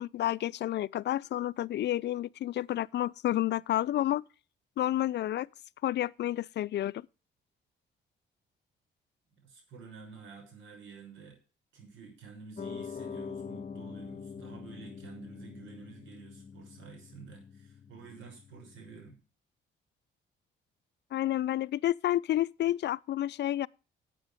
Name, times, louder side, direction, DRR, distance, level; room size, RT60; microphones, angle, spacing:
voice 1, 0.0-4.2 4.8-5.5 5.8-7.1 21.1-23.7, left 13 dB, 60° left, 0.4 m, -30 dB
voice 2, 9.4-11.4 11.7-19.2, right 5 dB, 80° right, 6.4 m, -50 dB
Piano, 12.6-19.1, left 6 dB, 40° left, 1.1 m, -44 dB
12.0 x 8.4 x 5.1 m
cardioid pair, 90°, 20 cm